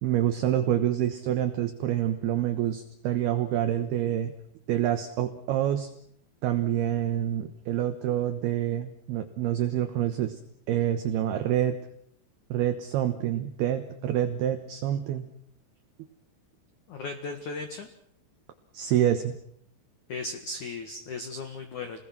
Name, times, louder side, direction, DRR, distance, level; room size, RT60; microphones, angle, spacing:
voice 1, 0.0-4.3 4.7-5.9 6.4-10.4 10.7-11.8 12.5-15.2 18.7-19.4, right 11 dB, 70° right, 8 dB, 2.7 m, -27 dB
voice 2, 16.9-17.9 20.1-22.0, left 3 dB, 55° left, 6 dB, 2.2 m, -36 dB
29.5 x 20.5 x 6.1 m, 0.67 s
omnidirectional pair, 5.8 m